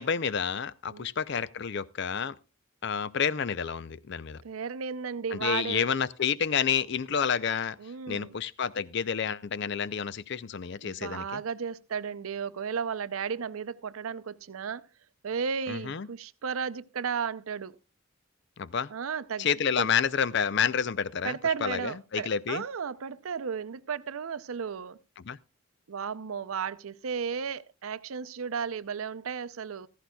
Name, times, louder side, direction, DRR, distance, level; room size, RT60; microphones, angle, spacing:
voice 1, 0.0-2.3 2.8-4.4 5.3-7.8 8.1-11.4 15.7-16.1 18.6-18.9 19.4-21.4 21.6-22.6 25.3-25.4, left 7 dB, 55° left, 0.5 m, -29 dB
voice 2, 4.4-5.9 7.8-8.3 10.8-14.9 15.2-17.8 18.9-19.5 19.8-19.9 21.2-25.0 25.9-29.9, right 6 dB, 90° right, 0.6 m, -34 dB
15.5 x 14.0 x 2.3 m
head